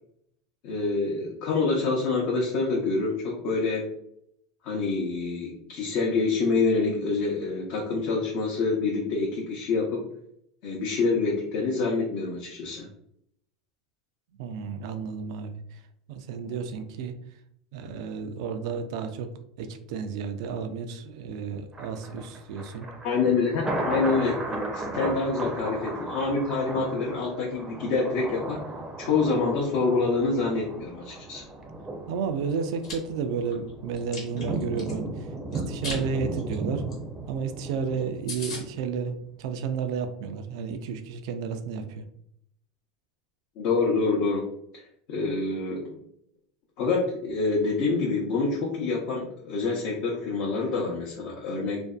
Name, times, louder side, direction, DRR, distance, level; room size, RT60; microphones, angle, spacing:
voice 1, 0.6-3.9 4.6-10.0 10.6-12.9 23.0-28.6 29.0-31.4 43.6-44.4 45.1-46.0 46.8-51.8, left 4 dB, 60° left, -3 dB, 0.6 m, -26 dB
voice 2, 14.4-15.8 16.1-17.1 17.7-19.3 19.6-22.9 32.1-36.8 37.3-42.0, right 6 dB, 70° right, 8 dB, 0.3 m, -32 dB
Thunder, 21.7-38.8 39.2-39.3, right 2 dB, 15° right, 0.5 m, -35 dB
Chewing mastication, 32.6-32.9 33.4-34.9 35.5-36.0 36.3-36.5 36.9-37.0 37.2-37.3 37.7-37.8 38.0-38.1 38.3-38.6, left 2 dB, 90° left, 1.1 m, -37 dB
2.5 x 2.1 x 2.3 m, 0.72 s
hypercardioid pair, 110°, 3 cm